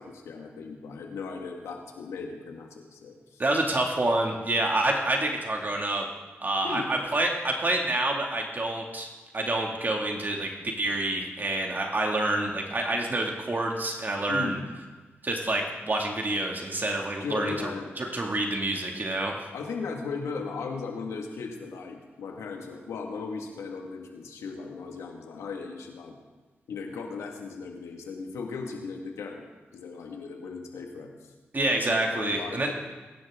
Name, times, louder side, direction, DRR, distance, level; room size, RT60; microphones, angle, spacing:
voice 1, 0.0-3.4 6.6-6.9 14.3-14.6 17.2-17.9 19.5-26.2 26.7-29.5 29.7-31.1 31.8-32.7, left 4 dB, 90° left, 2 dB, 1.9 m, -37 dB
voice 2, 3.4-6.1 6.4-9.1 9.3-10.5 10.8-14.6 15.2-17.7 18.0-19.5 31.5-32.7, right 2 dB, 40° right, 1 dB, 2.3 m, -27 dB
21.0 x 11.0 x 3.7 m, 1.2 s
supercardioid pair, 45°, 5 cm